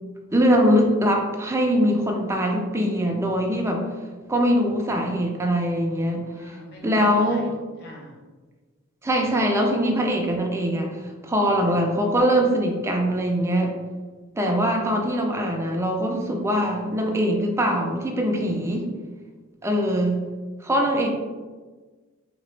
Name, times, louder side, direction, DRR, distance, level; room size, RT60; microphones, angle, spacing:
voice 1, 0.3-3.8 4.3-6.2 6.8-7.5 9.0-10.9 11.2-13.7 14.4-18.9 19.6-20.2 20.6-21.1, equal, 15° right, 1 dB, 0.4 m, -22 dB
voice 2, 6.3-8.2 20.7-21.0, left 1 dB, 50° left, -1 dB, 0.7 m, -42 dB
3.5 x 2.9 x 3.1 m, 1.4 s
head